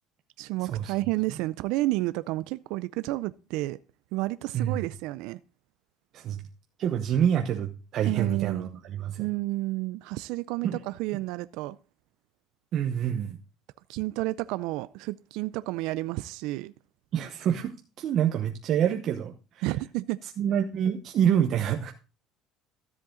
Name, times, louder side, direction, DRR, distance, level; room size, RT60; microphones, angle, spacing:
voice 1, 0.4-3.8 4.1-5.4 8.0-8.7 9.2-11.8 13.9-16.7 19.6-20.2, right 19 dB, 75° right, 0.4 m, -31 dB
voice 2, 6.8-9.3 10.6-10.8 12.7-13.4 17.1-19.7 20.4-21.9, right 9 dB, 45° right, 1.0 m, -27 dB
13.5 x 7.6 x 3.8 m
cardioid pair, 155°, 0 cm